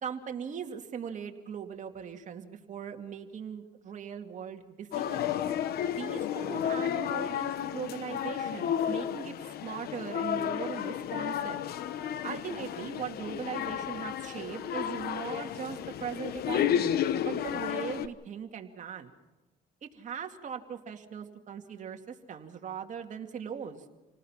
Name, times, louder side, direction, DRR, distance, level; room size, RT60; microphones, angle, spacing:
voice 1, 0.0-5.3 5.9-9.3 9.6-11.7 12.2-16.9 17.2-19.1 19.8-23.8, right 7 dB, 45° right, 4 dB, 2.4 m, -39 dB
sound 1, 4.9-18.1, left 10 dB, 65° left, 1.1 m, -32 dB
28.0 x 19.0 x 5.9 m, 1.1 s
cardioid pair, 110°, 17 cm